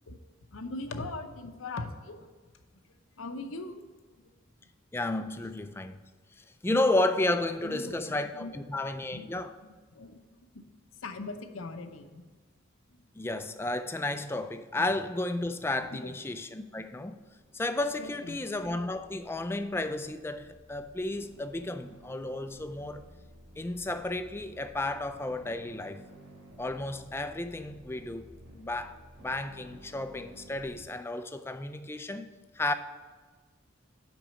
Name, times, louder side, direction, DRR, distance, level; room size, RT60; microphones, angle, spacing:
voice 1, 0.5-2.3 3.2-3.8 4.2-4.3 7.6-8.0 8.3-8.6 9.1-10.2 10.5-10.6 11.0-12.2 15.9-16.2 18.0-18.4, left 2 dB, 85° left, 0.7 m, -40 dB
voice 2, 4.9-6.0 6.6-9.5 13.2-17.2 17.5-23.0 23.6-26.0 26.6-28.3 28.5-32.7, left 2 dB, 10° left, 0.3 m, -32 dB
sound 1, 17.1-30.8, equal, 65° right, 1.5 m, -54 dB
6.1 x 5.3 x 6.9 m
head